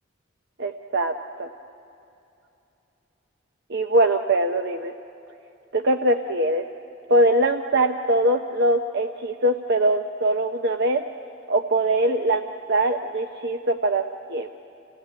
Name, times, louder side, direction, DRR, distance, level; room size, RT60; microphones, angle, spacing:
voice 1, 0.6-1.5 3.7-4.9 5.7-6.6 7.1-11.0 11.5-14.0 14.3-14.5, right 1 dB, 60° right, 5 dB, 0.8 m, -22 dB
29.5 x 16.5 x 9.0 m, 2.8 s
head